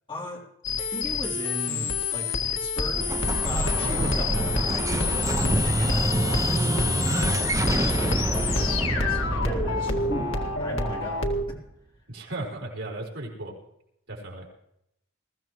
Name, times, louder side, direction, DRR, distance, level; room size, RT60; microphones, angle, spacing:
voice 1, 0.1-0.4 0.8-3.1 3.4-11.3, equal, 25° left, -3 dB, 3.6 m, -37 dB
sound 1, 0.6-11.4, left 4 dB, 80° left, 1.8 m, -28 dB
Explosion, 2.9-11.6, right 2 dB, 15° right, 0.4 m, -27 dB
Thunder, 3.8-7.1, right 1 dB, 50° right, 1.7 m, -39 dB
voice 2, 3.8-4.4 12.1-13.5 14.1-14.5, right 2 dB, 70° right, -1 dB, 4.2 m, -36 dB
21.0 x 14.5 x 3.1 m, 0.78 s
head